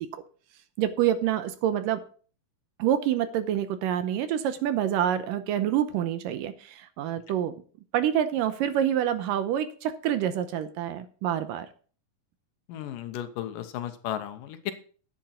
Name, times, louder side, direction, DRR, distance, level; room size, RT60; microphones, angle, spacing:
voice 1, 0.8-2.0 2.8-7.5 7.9-11.7, right 10 dB, 80° right, 11 dB, 2.3 m, -27 dB
voice 2, 12.7-14.7, left 11 dB, 75° left, 9 dB, 2.4 m, -34 dB
10.5 x 8.8 x 4.3 m, 0.41 s
omnidirectional pair, 4.2 m